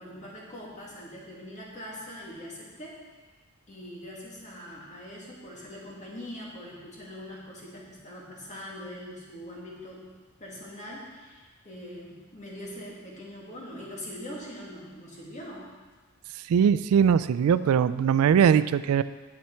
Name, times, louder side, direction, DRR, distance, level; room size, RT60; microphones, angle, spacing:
voice 1, 0.0-3.0 3.7-10.1 10.4-15.7, equal, 35° left, -4 dB, 2.0 m, -42 dB
voice 2, 16.5-19.0, right 7 dB, 85° right, 16 dB, 0.3 m, -21 dB
8.6 x 7.4 x 4.4 m, 1.4 s
head